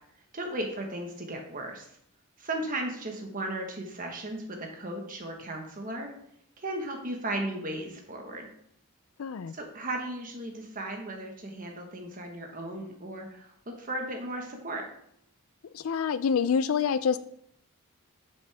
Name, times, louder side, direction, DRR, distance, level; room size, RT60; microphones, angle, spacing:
voice 1, 0.3-1.9 2.4-6.1 6.6-8.5 9.5-13.5 13.8-14.8, right 1 dB, 40° right, 2 dB, 1.3 m, -36 dB
voice 2, 9.2-9.5 15.7-17.2, left 6 dB, 70° left, 14 dB, 0.4 m, -26 dB
9.3 x 7.6 x 3.4 m, 0.69 s
head